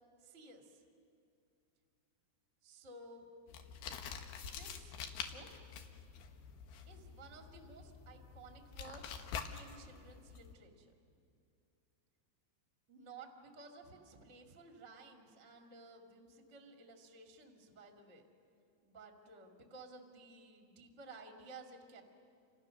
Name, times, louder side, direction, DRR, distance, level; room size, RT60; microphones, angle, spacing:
voice 1, 0.2-0.8 2.6-3.3 4.4-5.5 6.9-10.9 12.9-18.2 18.8-22.0, right 3 dB, 25° right, 2 dB, 1.9 m, -55 dB
sound 1, 3.5-10.5, left 7 dB, 75° left, 3.1 m, -47 dB
30.0 x 26.5 x 6.5 m, 2.5 s
omnidirectional pair, 4.8 m